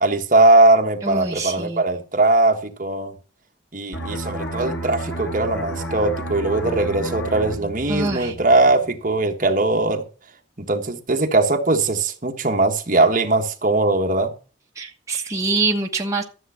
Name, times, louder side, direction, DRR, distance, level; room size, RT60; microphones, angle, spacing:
voice 1, 0.0-3.1 3.7-10.0 10.6-14.3, right 2 dB, 45° right, 1.4 m, -20 dB
voice 2, 1.0-1.8 7.9-8.3 14.8-16.2, right 3 dB, 15° right, 1.2 m, -24 dB
sound 1, 3.9-9.3 9.6-9.9, right 1 dB, 70° left, 2.1 m, -31 dB
13.0 x 7.4 x 5.7 m
head